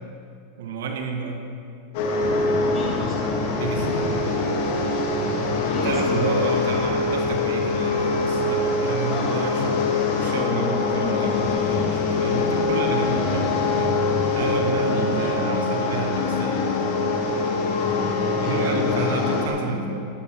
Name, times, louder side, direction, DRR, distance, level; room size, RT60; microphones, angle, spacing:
voice 1, 0.6-1.4 3.6-4.0 5.8-9.8 10.1-14.0 14.3-16.7 18.4-20.1, right 4 dB, 80° right, 3 dB, 1.5 m, -30 dB
sound 1, 1.9-19.5, left 3 dB, 65° left, 2.3 m, -23 dB
voice 2, 2.5-3.4 5.6-6.2 9.1-9.7 14.8-15.4 17.8-19.4, left 2 dB, 30° left, -4 dB, 3.3 m, -32 dB
13.5 x 13.0 x 3.5 m, 2.3 s
hypercardioid pair, 115°, 0 cm